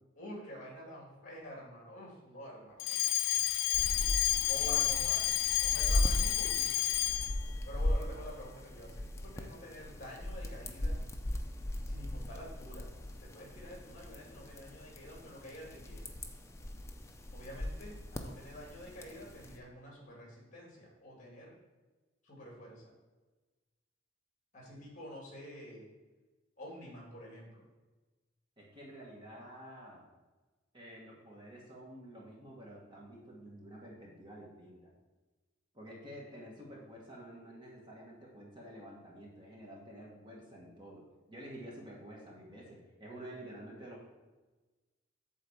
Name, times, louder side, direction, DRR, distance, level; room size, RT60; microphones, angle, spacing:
voice 1, 0.2-3.1 4.4-5.4 5.6-6.8 7.6-11.0 11.8-12.9 13.2-16.0 17.3-21.5 22.2-22.9 24.5-25.8 26.6-27.6, equal, 35° left, -3 dB, 2.5 m, -48 dB
Alarm, 2.8-7.4, left 14 dB, 70° left, 0.4 m, -30 dB
sound 1, 3.7-19.6, left 1 dB, 15° left, 0.5 m, -38 dB
voice 2, 28.6-30.1 30.7-34.9 35.7-44.1, right 1 dB, 25° right, -3 dB, 1.5 m, -50 dB
8.2 x 3.9 x 6.9 m, 1.2 s
head